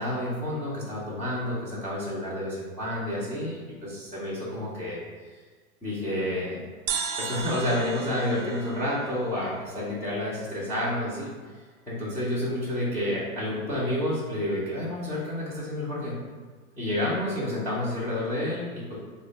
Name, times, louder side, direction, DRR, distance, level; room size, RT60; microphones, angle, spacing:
voice 1, 0.0-5.0 5.8-6.6 7.2-11.3 11.9-16.2 16.8-19.0, left 1 dB, 5° left, -12 dB, 0.4 m, -29 dB
sound 1, 6.9-10.4, right 6 dB, 80° right, 0.6 m, -36 dB
3.0 x 2.1 x 3.9 m, 1.4 s
hypercardioid pair, 110°, 44 cm